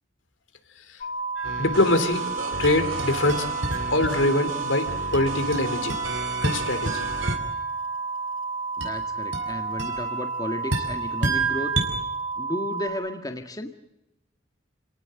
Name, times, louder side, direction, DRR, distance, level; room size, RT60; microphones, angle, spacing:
sound 1, 1.0-12.9, right 4 dB, 40° left, 3.8 m, -31 dB
sound 2, 1.4-2.2 2.6-4.6 5.1-7.8 8.8-11.9, right 3 dB, 70° right, 6.2 m, -31 dB
sound 3, 1.4-7.4, right 3 dB, 90° right, 3.1 m, -35 dB
voice 1, 1.6-2.2 2.6-3.5 3.9-6.0 6.4-7.1, left 2 dB, 75° left, 8 dB, 3.3 m, -23 dB
voice 2, 8.8-11.7 12.4-13.7, left 1 dB, 20° left, 4 dB, 1.8 m, -33 dB
29.5 x 18.0 x 7.7 m, 0.93 s
head